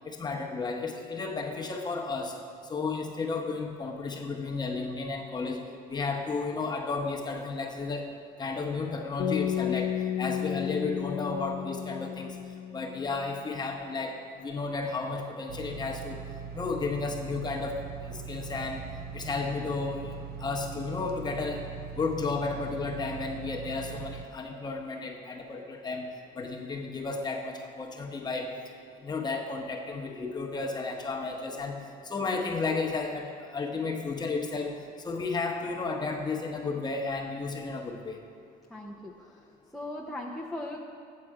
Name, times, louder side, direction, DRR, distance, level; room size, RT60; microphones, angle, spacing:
voice 1, 0.0-2.3 2.7-8.1 8.4-12.4 12.7-16.2 16.5-18.8 19.1-21.6 22.0-26.1 26.3-28.5 29.0-34.7 35.0-38.2, left 4 dB, 25° left, 1 dB, 1.0 m, -33 dB
sound 1, 9.2-13.4, left 10 dB, 60° left, 0.5 m, -33 dB
sound 2, 15.5-24.3, right 6 dB, 65° right, 0.5 m, -41 dB
voice 2, 38.7-39.4 39.7-40.8, left 1 dB, ahead, -3 dB, 0.6 m, -38 dB
7.5 x 7.5 x 4.7 m, 2.2 s
cardioid pair, 110°, 17 cm